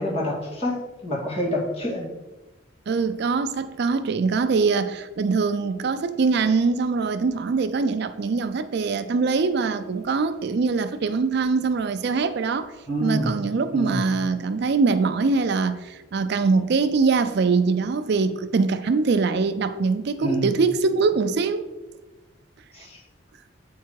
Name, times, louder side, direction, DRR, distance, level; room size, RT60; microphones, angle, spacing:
voice 1, 0.0-2.1 12.9-13.3 13.7-14.0 20.2-20.5 22.7-23.0, equal, 30° left, 2.0 m, -27 dB
voice 2, 2.9-12.7 13.0-21.6, right 4 dB, 55° right, 0.4 m, -23 dB
8.4 x 4.6 x 4.7 m
head